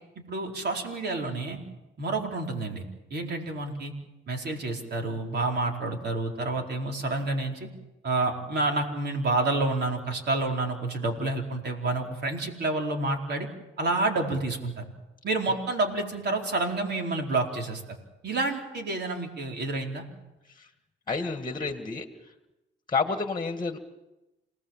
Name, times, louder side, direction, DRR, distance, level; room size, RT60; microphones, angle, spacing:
voice 1, 0.3-1.6 2.0-2.8 3.1-3.9 4.3-7.7 8.0-13.5 13.8-14.8 15.2-17.8 18.2-20.0, right 2 dB, 55° right, 1 dB, 4.5 m, -29 dB
voice 2, 21.1-22.1 22.9-23.8, left 4 dB, 20° left, 7 dB, 1.9 m, -29 dB
28.0 x 19.0 x 7.4 m, 1.0 s
cardioid pair, 90°, 20 cm